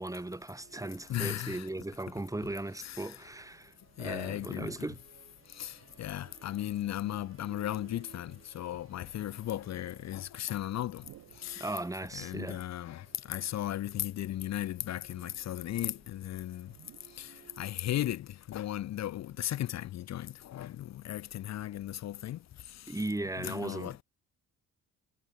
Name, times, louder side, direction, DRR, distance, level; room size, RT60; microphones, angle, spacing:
voice 1, 0.0-5.0 11.6-12.7 22.9-24.0, right 2 dB, 10° right, 2.0 m, -37 dB
Musical instrument, 0.5-18.2, right 7 dB, 45° right, 4.4 m, -60 dB
voice 2, 1.1-1.7 2.8-3.2 4.0-4.7 5.5-11.0 11.4-11.7 12.1-16.7 17.1-22.4 22.7-23.0 23.4-24.0, left 13 dB, 60° left, 0.7 m, -36 dB
sound 1, 5.6-6.2 6.9-7.6 8.2-8.3 9.4-10.6 10.9-13.1 13.4-13.6 14.8-15.6 16.6-17.6 18.7-20.0 20.5-22.2 22.5-22.7, right 13 dB, 80° right, 7.4 m, -60 dB
cardioid pair, 90°, 30 cm